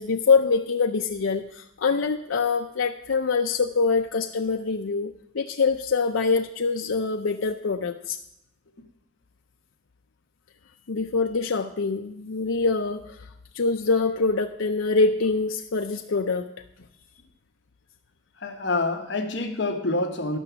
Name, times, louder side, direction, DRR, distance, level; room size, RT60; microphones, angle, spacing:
voice 1, 0.0-8.2 10.9-16.5, left 4 dB, 90° left, 3 dB, 0.6 m, -24 dB
voice 2, 18.4-20.4, left 2 dB, 65° left, 4 dB, 1.2 m, -27 dB
12.5 x 6.1 x 6.9 m, 0.79 s
head